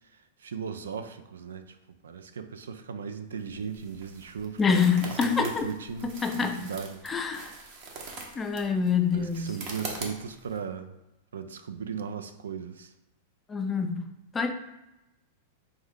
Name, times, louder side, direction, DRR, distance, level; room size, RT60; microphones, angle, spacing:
voice 1, 0.4-4.8 5.2-7.0 9.1-10.9 11.3-12.9, right 6 dB, 90° right, 9 dB, 0.3 m, -37 dB
sound 1, 3.4-10.6, right 3 dB, 50° right, 0.8 m, -43 dB
voice 2, 4.6-5.7 6.0-6.7 7.0-7.5 8.4-9.6 13.5-14.0 14.3-14.5, left 6 dB, 20° left, 6 dB, 0.4 m, -26 dB
3.6 x 3.1 x 3.6 m, 0.95 s
hypercardioid pair, 115°, 0 cm